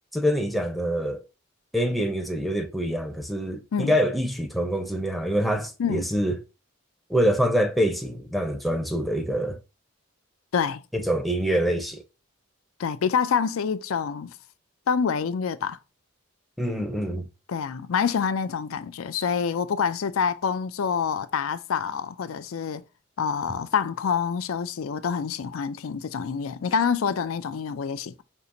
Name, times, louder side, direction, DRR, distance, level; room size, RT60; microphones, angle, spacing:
voice 1, 0.1-1.2 1.7-6.4 7.1-9.6 10.9-12.0 16.6-17.3, equal, ahead, 0.6 m, -25 dB
voice 2, 12.8-14.3 14.9-15.8 17.5-22.8 23.2-28.2, left 6 dB, 85° left, 0.4 m, -26 dB
5.4 x 2.9 x 2.6 m
head